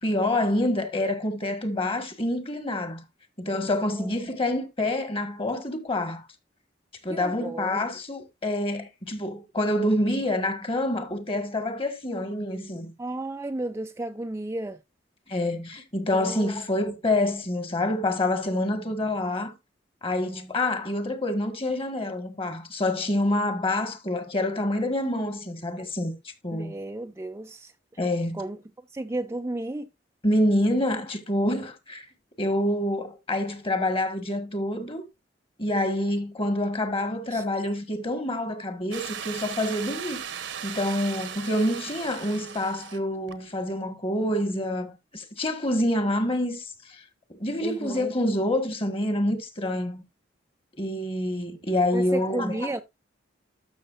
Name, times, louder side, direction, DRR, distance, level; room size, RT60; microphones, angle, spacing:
voice 1, 0.0-3.0 3.4-6.2 7.0-12.9 15.3-19.5 20.0-26.1 26.4-26.7 28.0-28.4 30.2-32.0 32.4-35.0 35.6-40.2 40.6-47.0 47.3-50.0 50.8-52.6, left 1 dB, 30° left, 1.6 m, -27 dB
voice 2, 7.1-7.8 13.0-14.8 16.1-16.5 26.5-27.7 28.3-28.6 28.9-29.9 37.3-37.4 47.6-48.1 51.9-52.8, right 2 dB, 15° right, 0.4 m, -33 dB
sound 1, 38.9-43.0 43.3-43.4, right 8 dB, 75° right, 1.0 m, -37 dB
12.5 x 6.4 x 2.5 m
head